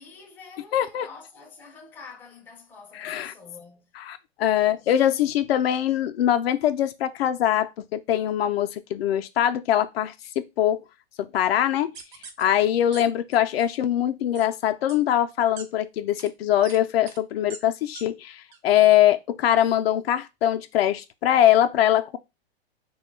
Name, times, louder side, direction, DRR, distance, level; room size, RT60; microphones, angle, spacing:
voice 1, 0.0-3.9, left 4 dB, 5° left, 0.4 m, -47 dB
voice 2, 0.7-1.1 2.9-3.3 3.9-10.8 11.2-11.9 12.4-22.2, left 11 dB, 70° left, 0.5 m, -22 dB
sound 1, 11.9-12.4 12.9-13.0 13.3-13.7 14.3-14.5 14.9-15.0 15.6-15.7 16.2-16.3 16.6-16.8 17.1-17.2 17.5-17.6 17.9-18.0 18.5-18.6, right 5 dB, 45° right, 0.7 m, -41 dB
3.0 x 2.3 x 3.1 m
hypercardioid pair, 130°, 32 cm